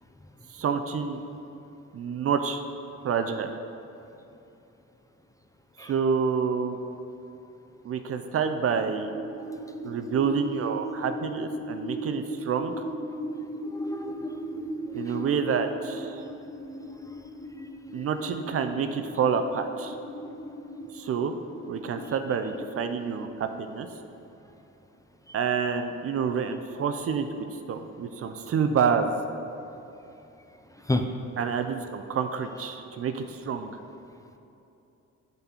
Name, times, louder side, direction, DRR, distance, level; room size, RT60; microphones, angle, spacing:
voice 1, 0.5-1.2 1.9-2.6 3.0-3.5 5.8-6.8 7.8-9.1 9.8-12.8 14.9-16.2 17.9-20.0 20.9-21.4 21.7-23.9 25.3-29.1 31.4-33.7, right 6 dB, 50° right, 8 dB, 0.5 m, -28 dB
sound 1, 8.4-23.4, equal, 40° left, 1.2 m, -38 dB
voice 2, 13.7-14.6 15.0-15.3 16.1-16.2 30.8-31.0, left 2 dB, 10° left, 5 dB, 0.5 m, -32 dB
10.5 x 4.1 x 4.4 m, 2.9 s
cardioid pair, 90°, 30 cm